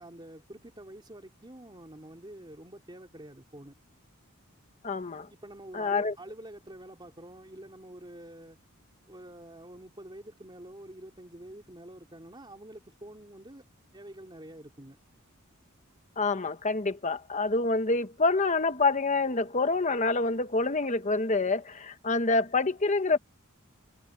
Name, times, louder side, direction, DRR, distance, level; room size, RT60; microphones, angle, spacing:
voice 1, 0.0-3.8 5.3-8.6 9.1-13.6 13.9-15.0, right 1 dB, 20° right, 3.1 m, -47 dB
voice 2, 4.8-5.3 5.7-6.1 16.2-23.2, left 3 dB, 35° left, 1.2 m, -27 dB
head